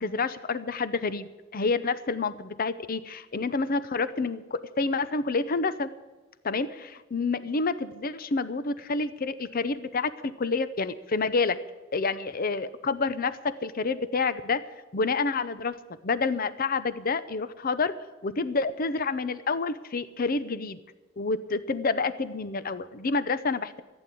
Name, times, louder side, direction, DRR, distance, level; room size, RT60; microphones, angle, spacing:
voice 1, 0.0-5.9 6.4-11.6 11.9-14.6 14.9-15.8 16.0-17.9 18.2-20.8 21.2-23.8, left 4 dB, 45° left, 15 dB, 0.7 m, -28 dB
15.0 x 9.0 x 8.4 m, 1.2 s
head